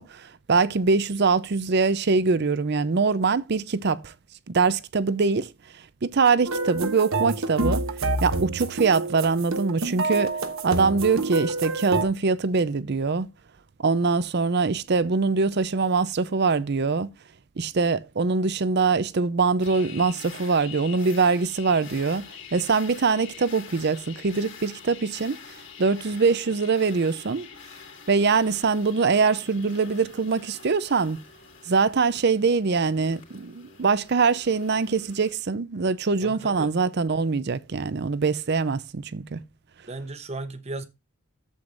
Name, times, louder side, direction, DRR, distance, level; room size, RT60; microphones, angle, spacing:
voice 1, 0.0-4.1 4.5-5.5 6.0-7.8 8.2-10.3 10.6-13.3 13.8-17.1 17.6-25.4 25.8-27.5 28.1-31.2 31.7-39.4, right 4 dB, 50° right, 0.6 m, -23 dB
sound 1, 6.5-12.0, right 2 dB, 75° right, 1.1 m, -28 dB
sound 2, 19.6-35.3, left 7 dB, 60° left, 2.9 m, -45 dB
voice 2, 36.2-36.7 39.9-40.9, right 2 dB, 30° right, 0.9 m, -36 dB
12.0 x 7.9 x 2.5 m
head